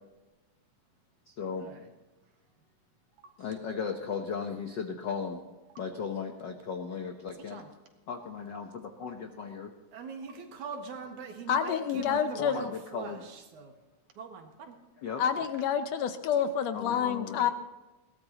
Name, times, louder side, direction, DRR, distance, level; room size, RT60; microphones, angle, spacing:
voice 1, 3.4-5.4 5.8-7.6 8.1-9.7 12.0-13.2 15.0-15.2 16.7-17.5, left 6 dB, 90° left, 4 dB, 0.9 m, -36 dB
voice 2, 9.9-13.8 14.2-14.8 15.2-15.5 16.4-16.5 16.8-17.0 17.3-17.5, right 4 dB, 80° right, 3 dB, 3.1 m, -43 dB
voice 3, 11.5-12.7 15.2-17.5, left 8 dB, 75° left, 9 dB, 1.7 m, -28 dB
21.0 x 17.5 x 2.9 m, 1.1 s
omnidirectional pair, 3.5 m